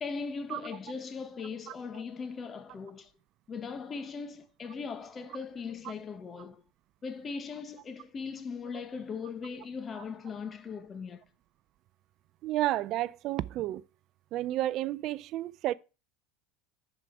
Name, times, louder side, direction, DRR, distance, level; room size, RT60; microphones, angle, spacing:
voice 1, 0.0-3.1 3.5-6.6 7.0-11.2, left 5 dB, 30° left, 1.3 m, -39 dB
voice 2, 12.4-13.8 14.3-15.7, right 14 dB, 50° right, 0.3 m, -31 dB
11.0 x 4.9 x 4.6 m
hypercardioid pair, 90°, 0 cm